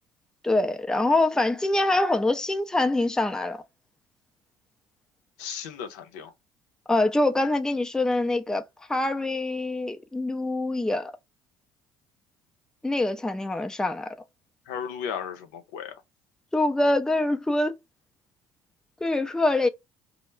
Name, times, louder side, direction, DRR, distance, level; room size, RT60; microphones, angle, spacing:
voice 1, 0.4-3.6 6.9-8.6 8.9-11.1 12.8-14.2 16.5-17.8 19.0-19.7, left 2 dB, 5° left, 0.4 m, -24 dB
voice 2, 5.4-6.3 14.7-16.0, left 8 dB, 80° left, 0.6 m, -35 dB
2.2 x 2.0 x 3.1 m
hypercardioid pair, 70°, 9 cm